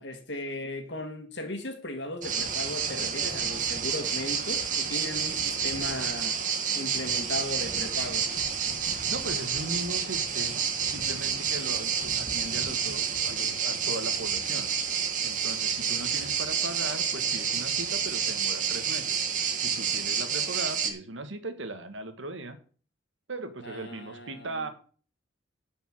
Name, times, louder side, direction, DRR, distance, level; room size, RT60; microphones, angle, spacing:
voice 1, 0.0-6.4 6.8-8.3 23.6-24.6, left 1 dB, 60° left, 1.7 m, -37 dB
sound 1, 2.2-20.9, right 7 dB, 40° right, 1.5 m, -29 dB
voice 2, 8.9-14.7 15.2-22.6 23.3-24.7, right 2 dB, 70° right, 1.6 m, -38 dB
11.0 x 5.4 x 7.3 m
head